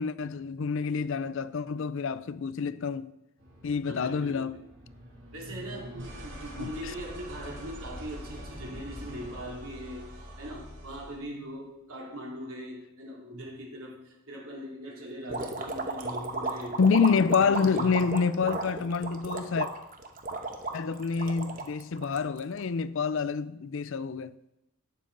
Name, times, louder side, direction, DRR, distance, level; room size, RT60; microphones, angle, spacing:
voice 1, 0.0-3.1 3.6-4.6 6.6-6.9 16.8-19.7 20.7-24.3, left 5 dB, 60° left, 0.4 m, -27 dB
sound 1, 3.4-11.2, equal, 60° right, 2.7 m, -44 dB
voice 2, 3.9-4.5 5.3-16.8 17.1-18.0, equal, 75° right, 2.7 m, -41 dB
sound 2, 15.3-22.6, right 3 dB, 40° right, 1.0 m, -34 dB
12.0 x 8.8 x 3.9 m
head